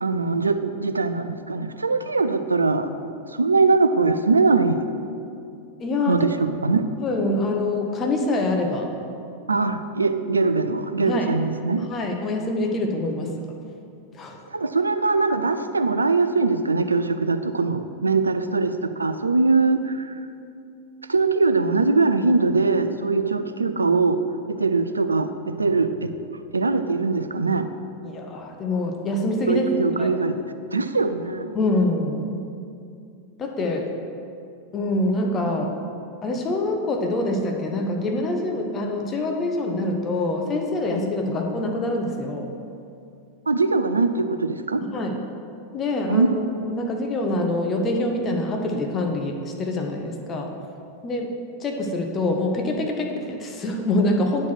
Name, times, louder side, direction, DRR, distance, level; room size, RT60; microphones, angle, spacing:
voice 1, 0.0-2.9 3.3-4.9 6.1-6.9 9.5-11.9 14.5-20.1 21.1-24.2 24.5-26.1 26.5-27.7 29.5-30.4 30.7-31.5 43.5-44.8 46.1-46.3, right 3 dB, 80° right, 10 dB, 0.4 m, -22 dB
voice 2, 5.8-6.5 7.0-8.9 11.0-11.3 11.8-13.4 14.1-14.4 28.0-29.7 30.0-30.1 31.5-32.4 33.4-33.9 34.7-35.8 36.2-42.5 44.8-45.2 45.7-50.6 51.0-54.5, left 2 dB, 25° left, 3 dB, 0.9 m, -25 dB
9.3 x 4.3 x 6.3 m, 2.5 s
figure-of-eight pair, 90°, 0 cm